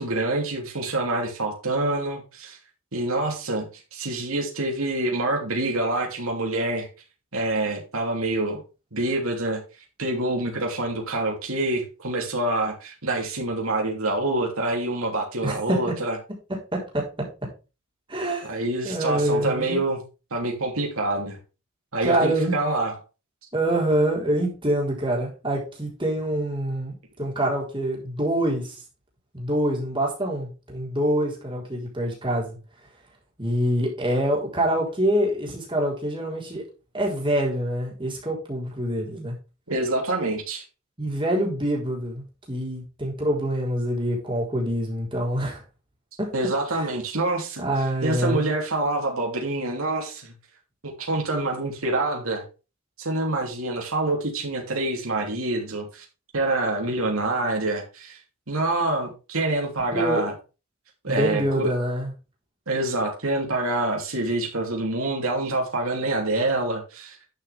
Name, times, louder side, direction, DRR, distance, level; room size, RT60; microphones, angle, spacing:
voice 1, 0.0-2.6 2.9-6.9 7.3-8.6 8.9-9.6 10.0-16.2 18.4-20.0 20.3-21.4 21.9-22.9 39.7-40.6 46.3-47.7 48.0-50.3 50.8-52.4 53.0-56.0 56.3-58.2 58.5-60.3 61.0-61.7 62.7-67.2, right 2 dB, 70° right, 1 dB, 2.9 m, -26 dB
voice 2, 15.4-16.0 16.5-17.3 18.1-18.5 18.8-19.8 22.0-22.6 23.5-28.8 29.3-32.6 33.4-36.7 36.9-39.4 41.0-45.6 46.2-46.3 46.7-46.9 47.6-48.5 59.9-60.3 61.1-62.1, right 1 dB, 20° right, -2 dB, 4.0 m, -25 dB
11.5 x 6.8 x 3.5 m, 0.30 s
head